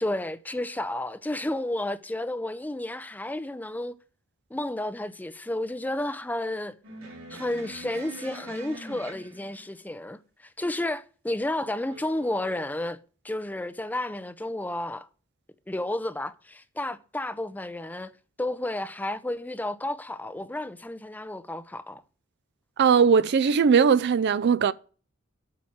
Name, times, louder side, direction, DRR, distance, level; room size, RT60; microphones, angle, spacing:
voice 1, 0.0-3.9 4.5-6.7 7.3-13.0 13.2-15.1 15.7-18.1 18.4-22.0, left 1 dB, 10° left, 0.4 m, -32 dB
sound 1, 6.8-9.8 11.8-12.6, right 2 dB, 80° right, 3.2 m, -44 dB
voice 2, 22.8-24.7, right 6 dB, 55° right, 0.4 m, -19 dB
8.5 x 4.6 x 7.2 m
head